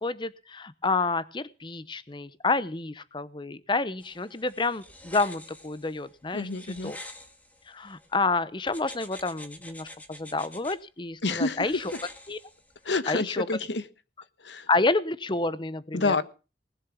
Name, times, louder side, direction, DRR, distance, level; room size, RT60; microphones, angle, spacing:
voice 1, 0.0-6.5 6.8-7.0 7.7-11.8 12.3-12.4 13.1-13.5 14.7-16.2, left 3 dB, 25° left, 16 dB, 0.9 m, -29 dB
sound 1, 4.0-8.1 8.7-10.8 11.6-12.9, left 1 dB, 10° left, 1.8 m, -47 dB
voice 2, 6.3-6.9 11.2-11.7 12.8-13.8 14.4-14.7 15.9-16.2, left 3 dB, 85° left, 14 dB, 1.2 m, -28 dB
19.5 x 7.5 x 7.3 m, 0.35 s
head